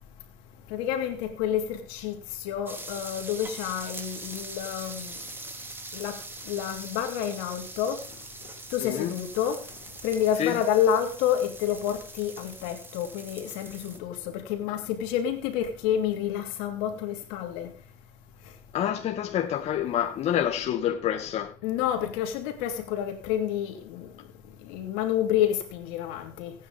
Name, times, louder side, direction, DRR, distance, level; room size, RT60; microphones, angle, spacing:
voice 1, 0.7-2.1 2.4-5.2 5.9-6.2 6.5-8.0 8.7-9.6 10.0-17.7 21.6-24.1 24.6-26.5, left 10 dB, 85° left, 3.0 m, -29 dB
sound 1, 2.7-14.0, right 2 dB, 15° right, 3.2 m, -42 dB
voice 2, 8.8-9.2 10.4-10.6 18.7-21.5, left 10 dB, 55° left, 1.9 m, -27 dB
18.0 x 9.7 x 3.6 m
supercardioid pair, 100°, 13 cm